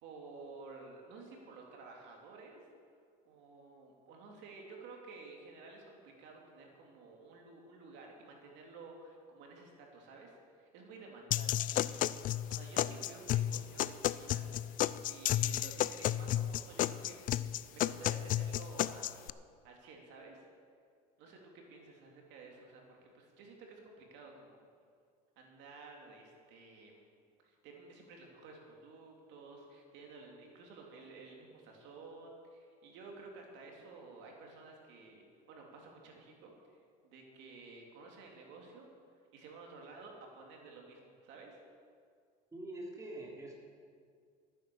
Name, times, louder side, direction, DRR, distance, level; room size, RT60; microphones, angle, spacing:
voice 1, 0.0-2.7 3.3-14.7 15.0-19.3 19.6-20.4 21.2-21.4 21.7-24.6 25.4-27.0 27.4-38.9 39.3-41.6, right 3 dB, 65° right, 0 dB, 2.8 m, -53 dB
sound 1, 11.3-19.3, left 13 dB, 45° left, 0.4 m, -33 dB
voice 2, 42.5-43.5, right 1 dB, 15° right, -2 dB, 3.0 m, -44 dB
13.5 x 10.0 x 6.9 m, 2.1 s
supercardioid pair, 115°, 20 cm